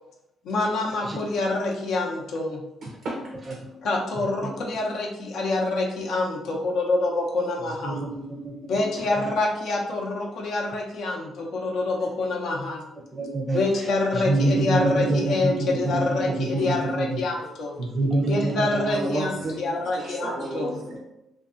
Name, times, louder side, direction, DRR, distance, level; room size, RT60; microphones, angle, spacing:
voice 1, 0.4-2.6 3.8-8.0 8.7-12.8 13.5-17.8 18.3-20.8, left 2 dB, 75° left, -1 dB, 0.5 m, -26 dB
voice 2, 2.8-3.9 16.6-16.8 17.4-17.5 18.8-21.0, right 2 dB, 75° right, -3 dB, 0.6 m, -33 dB
voice 3, 4.2-4.5 7.8-8.8 9.1-9.3 13.1-17.2 17.8-19.3, right 2 dB, 30° right, 2 dB, 0.5 m, -27 dB
2.6 x 2.4 x 2.4 m, 0.90 s
cardioid pair, 90°, 0 cm